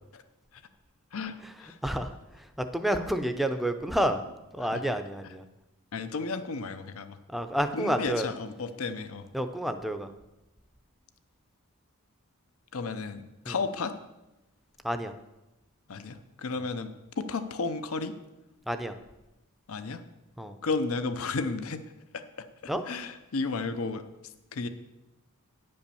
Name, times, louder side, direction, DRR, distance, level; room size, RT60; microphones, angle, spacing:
voice 1, 1.1-1.8 4.6-4.8 5.2-5.3 5.9-7.2 7.7-9.3 12.7-13.9 15.9-16.9 17.2-18.1 19.7-20.0 20.6-21.8 22.1-22.2 22.6-24.7, left 4 dB, 70° left, 11 dB, 0.6 m, -33 dB
voice 2, 1.8-2.1 2.6-4.2 4.5-5.4 7.3-8.3 9.3-10.1 13.5-13.6 14.8-15.1 18.7-18.9 20.4-20.5 22.7-22.8, right 1 dB, ahead, 8 dB, 0.5 m, -29 dB
9.9 x 5.4 x 6.9 m, 0.98 s
head